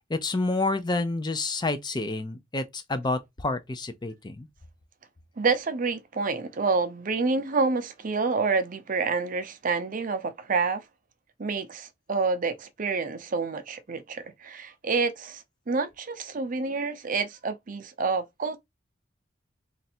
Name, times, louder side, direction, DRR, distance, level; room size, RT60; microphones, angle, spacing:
voice 1, 0.1-4.5, left 2 dB, 20° left, 0.5 m, -29 dB
voice 2, 5.4-10.8 11.4-18.6, right 4 dB, 45° right, 0.5 m, -28 dB
3.2 x 2.6 x 4.2 m
head